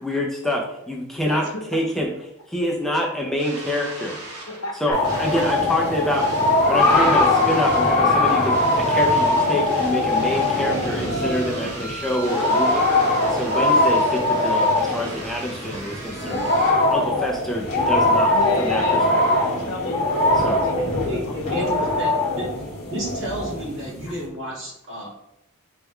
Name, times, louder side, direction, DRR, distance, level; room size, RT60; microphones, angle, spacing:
voice 1, 0.0-2.1 2.5-4.2 4.7-6.3 6.7-19.2 20.4-20.7, equal, ahead, -1 dB, 0.4 m, -26 dB
voice 2, 1.2-1.6 4.5-5.0 8.9-9.0 18.3-19.1 19.4-22.2, left 3 dB, 75° left, 2 dB, 0.7 m, -32 dB
sound 1, 3.4-16.7, right 2 dB, 80° right, 1.0 m, -37 dB
sound 2, 4.9-24.2, left 2 dB, 35° left, 1.0 m, -21 dB
voice 3, 20.8-22.4 22.9-25.1, equal, 60° right, -4 dB, 1.5 m, -30 dB
4.3 x 2.2 x 3.6 m, 0.82 s
head